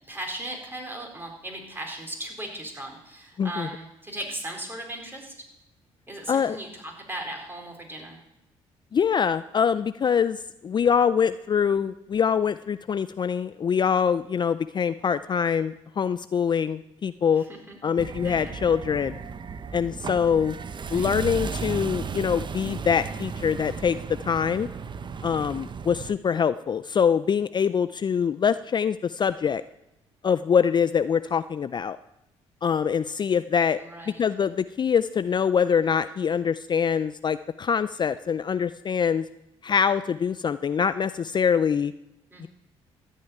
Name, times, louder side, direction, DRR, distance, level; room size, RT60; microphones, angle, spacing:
voice 1, 0.0-5.3 6.1-8.2 17.3-17.8 18.2-18.6 20.8-21.1 33.8-34.2 42.3-42.5, right 1 dB, 15° right, 1 dB, 4.2 m, -37 dB
voice 2, 3.4-3.7 6.3-6.6 8.9-17.4 17.8-19.2 19.7-20.6 20.9-24.0 24.2-24.7 25.2-29.6 30.2-32.0 32.6-33.8 34.2-39.2 39.6-41.9 42.4-42.5, left 7 dB, 35° left, 14 dB, 0.4 m, -24 dB
sound 1, 18.0-26.1, right 5 dB, 40° right, 0.7 m, -35 dB
13.5 x 5.6 x 9.3 m, 0.88 s
supercardioid pair, 70°, 12 cm